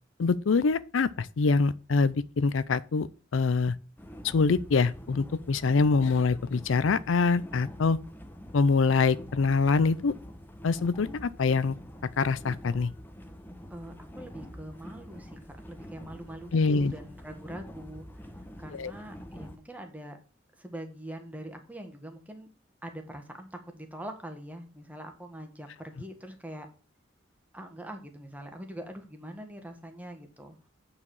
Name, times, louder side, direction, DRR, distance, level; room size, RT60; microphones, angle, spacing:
voice 1, 0.2-3.7 4.2-8.0 8.5-10.1 10.6-11.8 12.2-12.9 16.5-16.9 18.7-18.9, left 4 dB, 75° left, 0.5 m, -25 dB
sound 1, 4.0-19.6, equal, 10° left, 1.0 m, -46 dB
voice 2, 13.7-18.1 18.6-20.2 20.6-22.5 22.8-26.7 27.5-30.5, right 1 dB, 10° right, 1.6 m, -43 dB
8.4 x 4.9 x 7.1 m
head